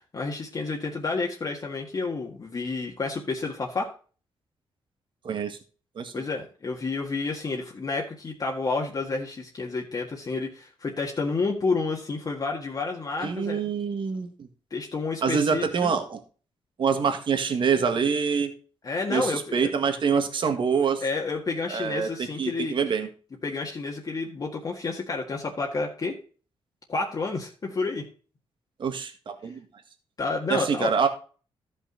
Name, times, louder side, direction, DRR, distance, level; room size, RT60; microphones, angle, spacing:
voice 1, 0.0-3.9 6.1-13.7 14.7-15.9 18.8-19.7 21.0-22.8 23.4-26.1 26.9-28.0 30.2-30.9, left 3 dB, 40° left, -1 dB, 1.8 m, -30 dB
voice 2, 5.2-5.6 5.9-6.2 13.2-14.5 15.2-16.2 16.8-18.5 19.1-21.0 21.7-22.1 22.4-23.1 28.8-29.6 30.5-31.1, right 6 dB, 55° right, 7 dB, 1.7 m, -25 dB
13.5 x 5.7 x 4.0 m, 0.38 s
cardioid pair, 105°, 10 cm